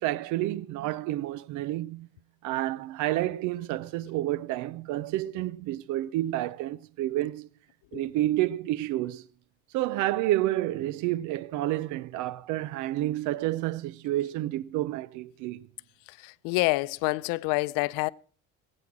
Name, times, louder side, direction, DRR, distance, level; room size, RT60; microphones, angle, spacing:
voice 1, 0.0-2.1 2.4-7.5 7.9-9.3 9.7-15.7, right 15 dB, 70° right, 0.6 m, -29 dB
voice 2, 16.2-18.1, left 23 dB, 90° left, 0.6 m, -27 dB
19.5 x 8.9 x 6.0 m
cardioid pair, 145°, 32 cm